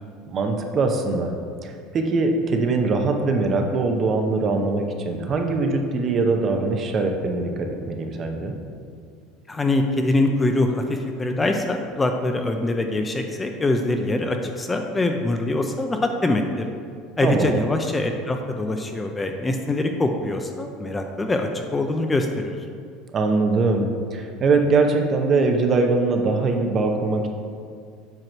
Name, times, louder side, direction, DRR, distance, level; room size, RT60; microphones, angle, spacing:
voice 1, 0.3-1.3 1.6-8.5 17.2-17.6 23.1-27.3, right 3 dB, 30° right, 3 dB, 0.7 m, -22 dB
voice 2, 9.5-16.7 17.2-22.6, left 2 dB, 15° left, 4 dB, 0.4 m, -24 dB
7.8 x 3.0 x 5.9 m, 2.2 s
cardioid pair, 140°, 0 cm